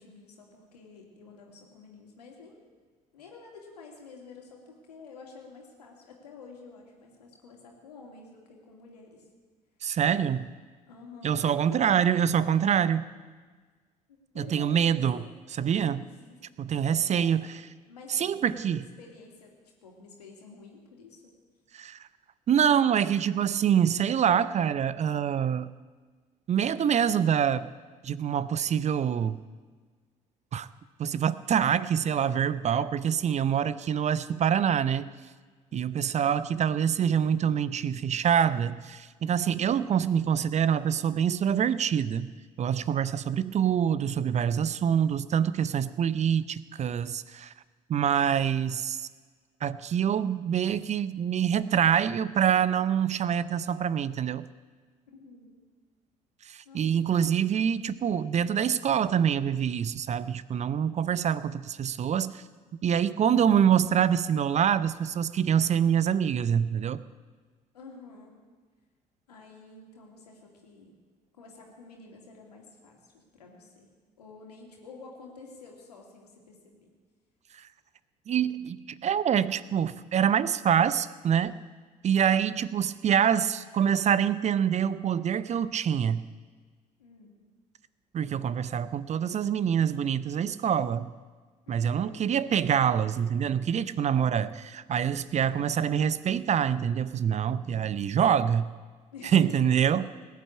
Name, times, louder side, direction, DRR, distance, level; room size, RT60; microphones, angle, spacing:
voice 1, 0.0-2.6 3.1-9.3 10.9-11.9 14.1-15.4 16.0-16.5 16.8-17.5 17.9-18.3 18.5-19.5 19.8-21.3 35.7-36.0 39.5-40.0 55.1-55.6 56.6-57.1 67.7-68.3 69.3-71.0 71.3-76.9 87.0-87.4 91.7-92.2 95.3-95.7 99.1-99.7 100.0-100.1, left 4 dB, 80° left, 0 dB, 2.7 m, -49 dB
voice 2, 9.8-10.5 11.2-13.0 14.4-16.0 16.6-17.5 18.1-18.8 21.7-22.0 22.5-25.7 26.5-27.7 28.0-29.4 30.5-30.7 31.0-35.1 35.7-42.3 42.6-47.5 47.9-49.1 49.6-54.5 56.5-62.4 62.8-67.0 77.6-77.7 78.3-81.6 82.0-86.2 88.1-91.1 91.7-98.7 99.3-100.1, right 8 dB, 35° right, 17 dB, 0.6 m, -25 dB
19.5 x 8.3 x 8.5 m, 1.5 s
figure-of-eight pair, 55°, 20 cm